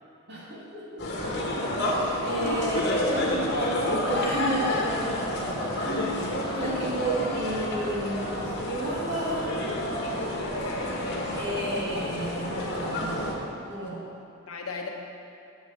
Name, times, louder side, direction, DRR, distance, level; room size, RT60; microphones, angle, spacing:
voice 1, 0.3-1.2 1.6-1.7 2.2-9.6 11.4-13.3 13.7-14.0, right 1 dB, 50° right, -6 dB, 2.1 m, -32 dB
sound 1, 1.0-13.3, left 1 dB, 50° left, 1.3 m, -29 dB
voice 2, 2.3-2.6 6.6-6.9 10.4-11.0 14.5-14.9, left 3 dB, 70° left, 1 dB, 1.0 m, -37 dB
7.1 x 5.6 x 6.9 m, 2.6 s
head